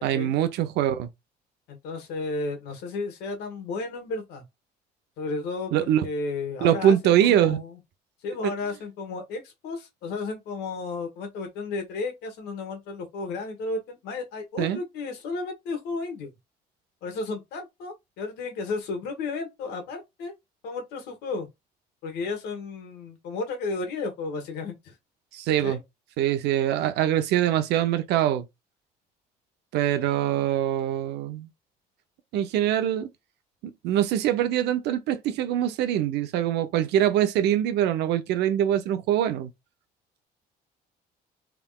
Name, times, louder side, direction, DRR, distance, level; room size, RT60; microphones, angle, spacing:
voice 1, 0.0-1.1 5.7-6.1 6.6-7.6 8.4-8.5 14.6-14.8 25.3-25.8 26.2-28.5 29.7-31.5 32.3-33.1 33.8-39.5, right 11 dB, 85° right, 0.8 m, -23 dB
voice 2, 1.7-4.4 5.2-7.8 8.2-16.3 17.0-20.3 20.6-21.5 22.0-24.9 25.5-25.8, left 3 dB, 85° left, 1.6 m, -33 dB
3.7 x 3.5 x 2.4 m
cardioid pair, 110°, 17 cm